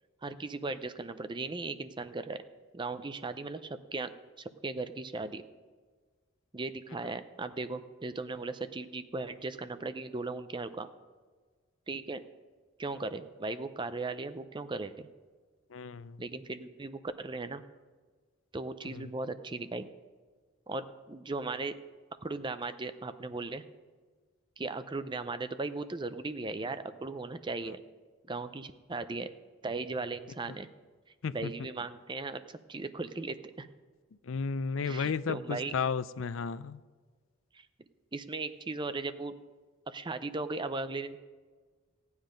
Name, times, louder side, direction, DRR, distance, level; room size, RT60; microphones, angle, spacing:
voice 1, 0.2-2.4 2.7-4.1 4.4-5.4 6.5-10.9 11.9-12.2 12.8-15.1 16.2-17.6 18.5-19.9 20.7-21.7 22.2-23.6 24.6-27.8 28.3-29.3 29.6-30.7 31.3-32.4 32.7-33.7 34.8-35.7 38.1-39.3 39.9-41.2, right 3 dB, 25° right, 11 dB, 0.6 m, -37 dB
voice 2, 15.7-16.2 18.9-19.1 31.2-31.5 34.2-36.8, left 5 dB, 70° left, 15 dB, 0.5 m, -33 dB
15.0 x 9.6 x 5.2 m, 1.4 s
head